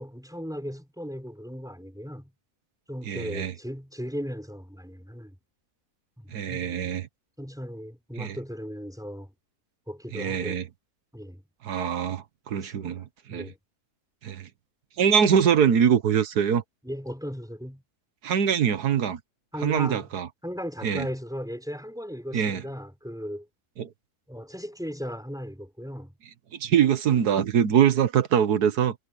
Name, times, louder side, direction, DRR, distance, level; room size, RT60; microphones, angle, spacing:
voice 1, 0.0-2.3 2.9-5.4 6.2-7.0 7.4-9.3 9.9-10.6 11.1-11.4 12.6-13.6 16.8-17.8 19.5-20.1 20.4-23.5 24.3-26.1, equal, ahead, 3.9 m, -37 dB
voice 2, 3.1-3.5 6.3-7.1 8.2-8.4 10.1-10.6 11.6-13.4 14.2-14.5 15.0-16.6 18.2-19.2 19.6-20.3 20.8-21.0 22.3-22.6 23.8-23.9 26.6-28.9, right 8 dB, 85° right, 1.7 m, -23 dB
omnidirectional pair, 1.6 m